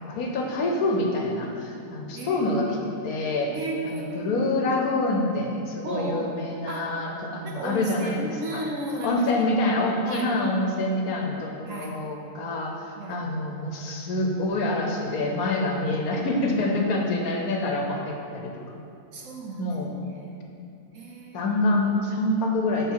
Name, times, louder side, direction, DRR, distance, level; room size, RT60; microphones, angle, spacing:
voice 1, 0.0-2.7 3.0-3.5 3.8-8.6 9.0-18.8 19.6-19.9 21.3-22.9, left 2 dB, 70° left, 1 dB, 1.2 m, -26 dB
voice 2, 2.1-2.6 3.0-3.1 3.5-4.3 5.8-7.0 7.4-9.5 10.0-10.3 11.7-12.0 13.0-13.2 15.9-16.7 19.1-20.4 20.9-21.5, right 2 dB, 60° right, -1 dB, 1.0 m, -35 dB
9.5 x 3.5 x 4.6 m, 2.6 s
omnidirectional pair, 1.7 m